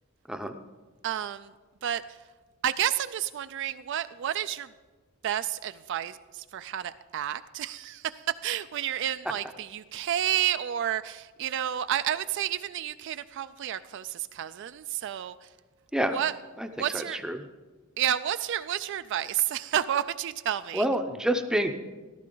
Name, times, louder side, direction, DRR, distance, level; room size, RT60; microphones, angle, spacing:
voice 1, 1.0-1.5 1.8-2.2 2.6-4.7 5.2-15.5 16.1-16.4 16.7-17.2 18.0-20.9, right 11 dB, 55° right, 13 dB, 0.3 m, -30 dB
voice 2, 16.9-17.4 20.7-21.7, right 1 dB, 5° right, 6 dB, 0.6 m, -27 dB
14.5 x 12.5 x 3.8 m, 1.4 s
head